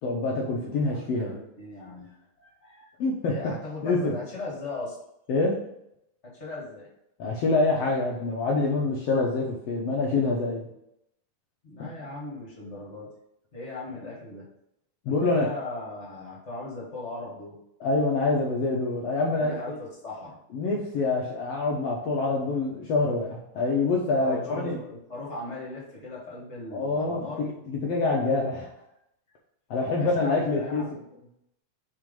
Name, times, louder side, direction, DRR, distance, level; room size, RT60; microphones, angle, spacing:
voice 1, 0.0-1.4 3.0-3.5 3.8-4.2 5.3-5.6 7.2-10.7 11.8-11.9 15.0-15.5 17.8-19.8 20.5-24.8 26.7-28.7 29.7-30.8, left 3 dB, 85° left, -2 dB, 1.3 m, -26 dB
voice 2, 0.9-2.1 2.4-2.9 3.2-5.0 6.2-6.9 11.6-13.1 13.5-14.5 15.0-17.6 19.3-20.3 24.2-27.5 29.9-31.1, left 2 dB, 35° left, -5 dB, 1.1 m, -38 dB
6.2 x 3.7 x 5.2 m, 0.79 s
omnidirectional pair, 4.1 m